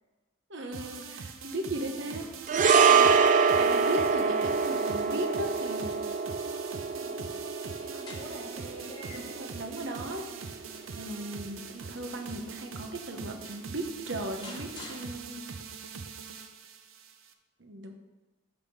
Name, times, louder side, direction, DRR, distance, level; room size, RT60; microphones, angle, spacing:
voice 1, 0.5-2.3 2.8-3.1 3.5-6.0 9.1-10.2 10.9-15.4 17.6-17.9, right 1 dB, 60° right, 4 dB, 1.0 m, -37 dB
sound 1, 0.7-17.3, right 5 dB, 80° right, 0.7 m, -43 dB
voice 2, 2.0-2.3 6.9-7.4 7.8-9.3 13.1-13.2, equal, 5° left, -7 dB, 2.1 m, -48 dB
sound 2, 2.5-10.9 11.2-11.4, right 5 dB, 40° right, 0.3 m, -25 dB
sound 3, 7.5-9.5 10.0-12.6 13.1-13.2 13.4-15.7, left 2 dB, 20° left, 1.2 m, -51 dB
9.3 x 3.7 x 6.5 m, 1.2 s
head